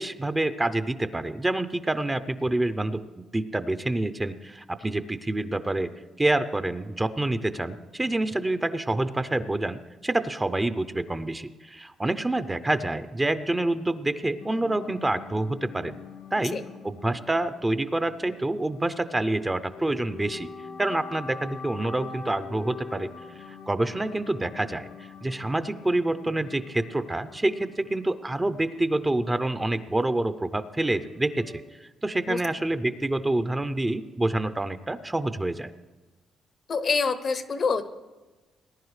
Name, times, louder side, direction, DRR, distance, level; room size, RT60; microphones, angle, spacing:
voice 1, 0.0-3.0 3.3-5.9 6.2-16.0 16.3-16.6 16.8-20.5 20.8-23.1 23.5-35.7, right 2 dB, 15° right, 11 dB, 0.5 m, -27 dB
sound 1, 14.4-31.6, left 5 dB, 80° left, 1.8 m, -45 dB
voice 2, 36.7-37.8, left 5 dB, 50° left, 12 dB, 0.7 m, -26 dB
19.5 x 10.5 x 3.2 m, 1.2 s
cardioid pair, 90°, 0 cm